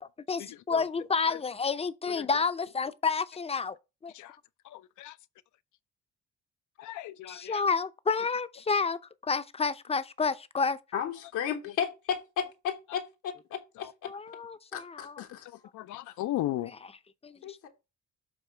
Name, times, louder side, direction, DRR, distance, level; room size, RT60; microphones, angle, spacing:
voice 1, 0.0-3.8 4.0-4.1 7.3-10.8 14.1-15.2 16.5-17.6, left 4 dB, 20° left, 0.5 m, -30 dB
voice 2, 6.8-7.5 15.7-16.7, left 14 dB, 75° left, 0.5 m, -34 dB
voice 3, 10.9-14.1 14.7-15.5 17.4-17.7, left 8 dB, 90° left, 1.2 m, -34 dB
7.0 x 3.0 x 5.6 m
cardioid pair, 90°, 30 cm